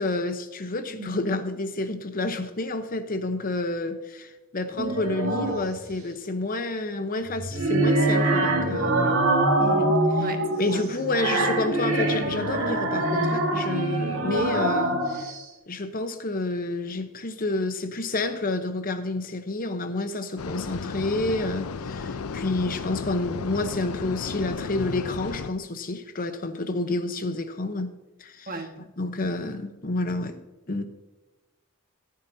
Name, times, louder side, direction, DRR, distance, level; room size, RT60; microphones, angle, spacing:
voice 1, 0.0-9.2 10.2-10.3 10.6-15.3 15.7-27.9 28.2-28.6 29.0-30.4 30.7-30.9, left 2 dB, 40° left, 0.9 m, -29 dB
sound 1, 4.8-5.7 7.3-15.4, right 1 dB, 70° right, 2.0 m, -24 dB
voice 2, 10.2-10.8 28.5-28.8, right 2 dB, 45° right, 1.5 m, -36 dB
sound 2, 20.4-25.5, left 5 dB, 80° left, 0.5 m, -33 dB
15.0 x 9.2 x 2.7 m
head